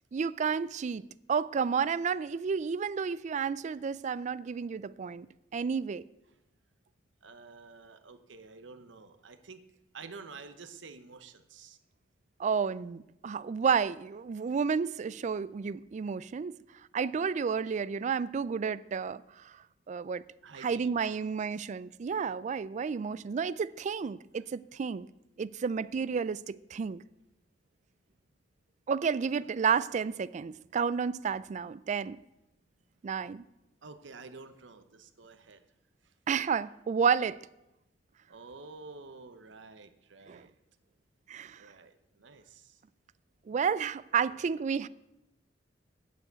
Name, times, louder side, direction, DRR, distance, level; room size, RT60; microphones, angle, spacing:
voice 1, 0.1-1.0 1.3-5.3 5.5-6.0 12.4-16.6 16.9-19.5 19.9-20.2 20.6-25.1 25.4-27.0 28.9-32.2 33.0-33.4 36.3-37.4 40.3-40.4 41.3-41.6 43.5-44.9, right 6 dB, 40° right, 0.3 m, -31 dB
voice 2, 7.2-9.6 9.9-11.8 20.4-21.2 21.5-21.6 33.8-35.6 38.3-40.5 41.5-42.8 44.1-44.3, right 4 dB, 75° right, 0.9 m, -50 dB
8.4 x 7.0 x 8.0 m
head